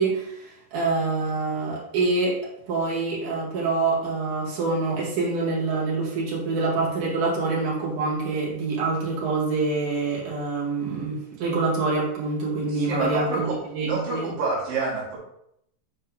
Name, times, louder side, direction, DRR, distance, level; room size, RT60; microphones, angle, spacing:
voice 1, 0.0-2.4 2.7-14.3, right 3 dB, 65° right, -7 dB, 3.6 m, -26 dB
voice 2, 12.7-13.6 13.8-15.2, right 3 dB, 85° right, -6 dB, 3.5 m, -27 dB
8.7 x 4.4 x 3.9 m, 0.76 s
omnidirectional pair, 3.7 m